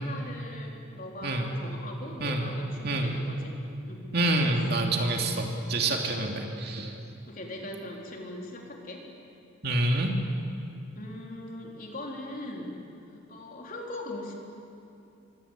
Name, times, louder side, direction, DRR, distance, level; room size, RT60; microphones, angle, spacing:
voice 1, 0.0-4.1 4.4-4.6 7.3-9.1 11.0-12.8 13.1-14.3, left 1 dB, 40° left, 0 dB, 4.1 m, -40 dB
voice 2, 2.8-3.1 4.1-7.0 9.6-10.2, right 2 dB, 50° right, 2 dB, 2.8 m, -27 dB
25.5 x 24.5 x 8.5 m, 2.6 s
head